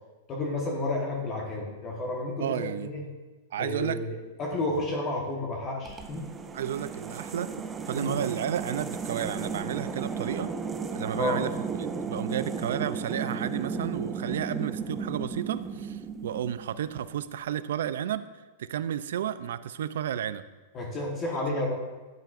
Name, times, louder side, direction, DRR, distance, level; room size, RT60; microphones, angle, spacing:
voice 1, 0.3-3.0 3.6-6.3 8.0-8.1 11.1-11.4 20.7-21.8, left 2 dB, 30° left, -1 dB, 1.2 m, -31 dB
voice 2, 2.4-2.9 3.5-4.0 6.5-7.5 7.9-10.5 10.9-11.5 11.8-18.2 18.6-20.4, right 10 dB, 80° right, 14 dB, 0.4 m, -32 dB
sound 1, 5.9-16.9, right 5 dB, 15° right, 0.5 m, -35 dB
12.5 x 7.4 x 2.5 m, 1.2 s
supercardioid pair, 145°, 0 cm